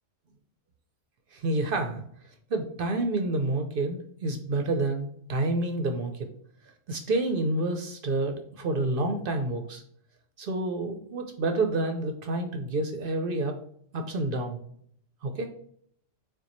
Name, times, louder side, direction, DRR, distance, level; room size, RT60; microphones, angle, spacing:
voice 1, 1.3-2.0 2.5-6.3 6.9-9.8 10.4-13.6 13.9-14.6 15.2-15.5, right 2 dB, 60° right, 5 dB, 0.6 m, -29 dB
6.6 x 2.3 x 2.9 m, 0.64 s
omnidirectional pair, 1.4 m